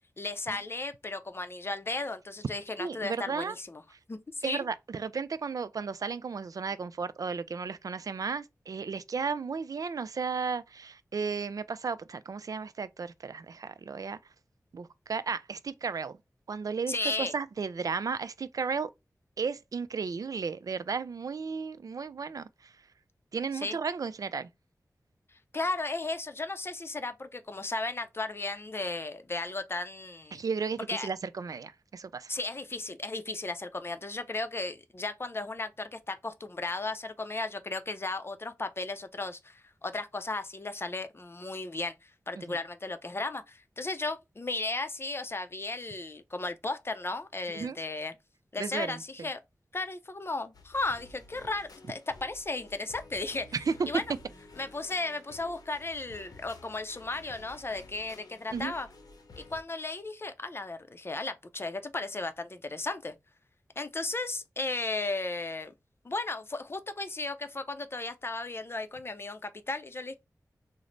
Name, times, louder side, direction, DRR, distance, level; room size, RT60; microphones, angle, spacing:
voice 1, 0.2-3.8 4.1-4.6 16.9-17.3 23.6-23.8 25.5-30.4 30.9-31.1 32.3-48.1 48.5-49.4 49.7-53.5 53.9-54.0 54.6-58.9 59.4-63.2 63.8-65.7 66.0-70.1, left 2 dB, 35° left, 0.5 m, -35 dB
voice 2, 2.8-3.5 4.4-14.2 14.7-16.2 16.5-18.9 19.4-22.7 23.3-24.5 30.3-32.3 42.4-42.6 47.5-47.8 48.6-49.3 53.5-53.9 58.5-58.7, right 5 dB, 65° right, 0.3 m, -34 dB
sound 1, 50.5-59.6, left 2 dB, 80° left, 0.7 m, -52 dB
3.1 x 2.0 x 3.8 m
cardioid pair, 55°, 7 cm